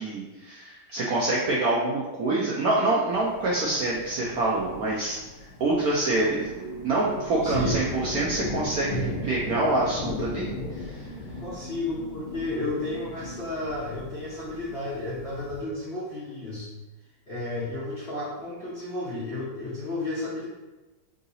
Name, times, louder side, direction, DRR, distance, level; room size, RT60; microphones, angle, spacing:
voice 1, 0.0-5.2 5.6-6.5 6.8-11.1, right 2 dB, 75° right, -4 dB, 0.8 m, -26 dB
sound 1, 3.1-15.6, left 2 dB, 85° left, 1.5 m, -37 dB
sound 2, 5.9-13.6, right 3 dB, 50° right, 1.4 m, -41 dB
voice 2, 7.3-7.9 11.4-16.7 17.3-20.5, left 2 dB, 60° left, -8 dB, 0.6 m, -33 dB
3.8 x 2.7 x 4.0 m, 1.1 s
omnidirectional pair, 2.2 m